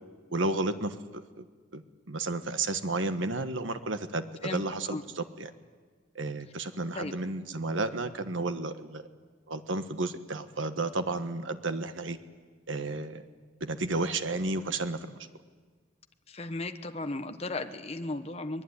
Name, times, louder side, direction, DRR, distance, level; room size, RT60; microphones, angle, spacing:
voice 1, 0.3-1.4 1.7-5.5 6.1-9.0 9.5-12.2 12.7-13.2 13.6-15.3, right 2 dB, 90° right, 10 dB, 1.4 m, -32 dB
voice 2, 4.4-5.0 6.9-7.1 16.3-18.6, left 2 dB, 35° left, 7 dB, 1.2 m, -36 dB
23.5 x 21.0 x 9.8 m, 1.5 s
head